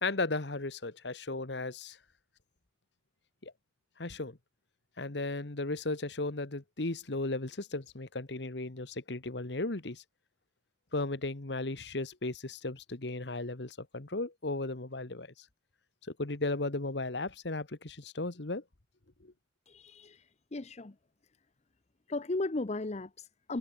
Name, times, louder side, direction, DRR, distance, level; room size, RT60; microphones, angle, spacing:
voice 1, 0.0-2.0 3.4-3.5 4.0-4.4 5.0-10.0 10.9-15.4 16.2-18.6 19.2-19.3, left 2 dB, 70° left, 1.5 m, -35 dB
voice 2, 19.7-20.3 20.5-21.0 22.1-23.6, left 2 dB, 40° left, 0.8 m, -36 dB
head